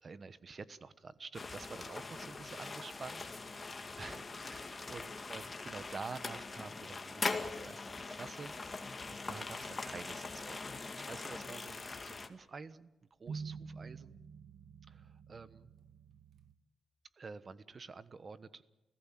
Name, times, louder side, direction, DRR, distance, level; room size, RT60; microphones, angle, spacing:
voice 1, 0.0-12.9 13.2-14.2 14.9-15.7 17.2-18.6, right 4 dB, 40° right, 15 dB, 1.2 m, -49 dB
sound 1, 1.3-12.3, left 3 dB, 30° left, 2.0 m, -42 dB
sound 2, 13.3-16.5, right 5 dB, 75° right, 1.4 m, -48 dB
29.5 x 16.0 x 7.6 m, 1.1 s
cardioid pair, 110°, 0 cm